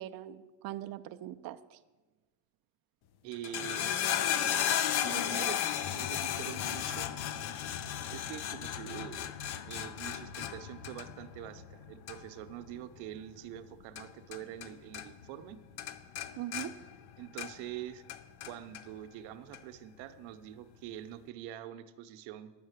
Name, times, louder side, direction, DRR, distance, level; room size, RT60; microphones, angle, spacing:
voice 1, 0.0-1.8 16.4-16.8, right 13 dB, 50° right, 10 dB, 0.5 m, -41 dB
voice 2, 3.2-4.0 4.9-7.1 7.4-7.8 8.1-9.3 9.7-15.6 17.2-18.0 18.5-22.5, right 12 dB, 85° right, 9 dB, 0.8 m, -45 dB
sound 1, 3.3-14.7 14.9-15.5 15.8-17.7 18.1-18.8 19.5-19.6, left 10 dB, 55° left, 0.8 m, -35 dB
10.0 x 6.5 x 8.1 m, 1.2 s
cardioid pair, 120°, 45 cm